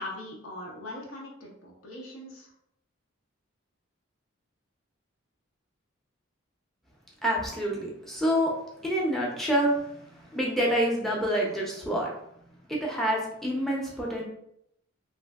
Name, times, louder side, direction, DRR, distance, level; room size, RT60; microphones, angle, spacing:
voice 1, 0.0-2.5, left 1 dB, 75° left, -1 dB, 0.8 m, -40 dB
voice 2, 7.2-8.5 8.8-12.1 12.7-14.2, equal, ahead, -3 dB, 0.6 m, -27 dB
3.1 x 2.6 x 2.3 m, 0.74 s
head